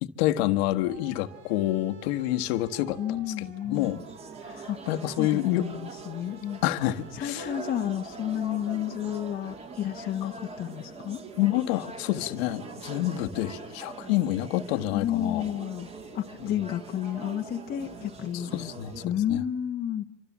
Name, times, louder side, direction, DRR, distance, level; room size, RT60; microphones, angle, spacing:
voice 1, 0.0-4.0 4.9-5.7 6.6-7.5 10.2-10.3 11.4-15.4 16.4-16.6 18.3-19.4, left 14 dB, 65° left, 8 dB, 1.6 m, -28 dB
sound 1, 0.9-10.2, right 8 dB, 80° right, 4.6 m, -51 dB
voice 2, 3.0-4.0 4.7-4.8 5.2-6.6 7.1-11.3 14.9-15.9 16.1-18.7 19.0-20.0, left 10 dB, 30° left, 3 dB, 1.1 m, -31 dB
sound 2, 3.7-19.1, right 3 dB, 20° right, 1.8 m, -43 dB
26.0 x 25.5 x 7.3 m, 0.78 s
supercardioid pair, 155°, 33 cm